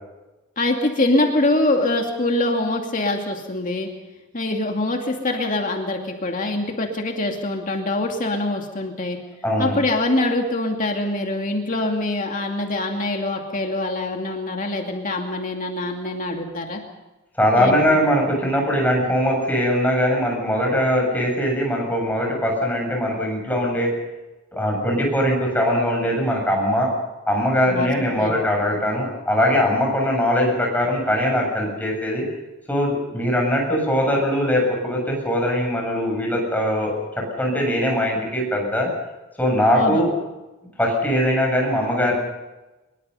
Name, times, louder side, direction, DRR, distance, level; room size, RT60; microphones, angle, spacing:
voice 1, 0.6-3.9 4.3-9.2 9.6-16.8 17.6-17.8 27.7-27.9 28.2-28.3 39.7-40.1, left 2 dB, 40° left, 2 dB, 2.5 m, -24 dB
voice 2, 9.4-9.8 17.3-23.9 24.5-26.9 27.3-32.2 32.7-38.9 39.4-40.1 40.8-42.2, equal, 10° left, -1 dB, 8.0 m, -21 dB
24.5 x 22.5 x 5.6 m, 1.1 s
head